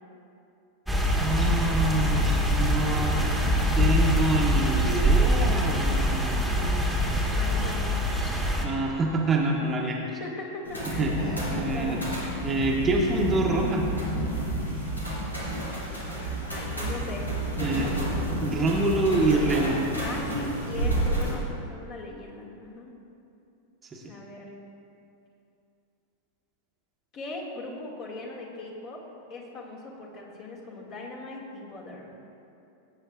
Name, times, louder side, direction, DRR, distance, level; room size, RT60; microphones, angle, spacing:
sound 1, 0.9-8.7, equal, 5° left, 1.6 m, -24 dB
voice 1, 1.2-3.1 3.7-7.1 8.6-10.0 11.0-12.0 12.4-13.9 17.6-17.9 18.4-19.8 23.9-24.0, right 2 dB, 20° right, -1 dB, 1.1 m, -26 dB
voice 2, 7.3-7.9 9.6-9.7 10.2-11.2 11.6-12.0 15.9-18.4 20.0-22.9 24.1-24.5 27.1-29.0 29.3-32.0, left 2 dB, 35° left, -2 dB, 2.1 m, -39 dB
sound 2, 10.6-21.3, right 1 dB, 85° left, 2.7 m, -30 dB
17.5 x 8.7 x 2.5 m, 2.7 s
figure-of-eight pair, 90°, 0 cm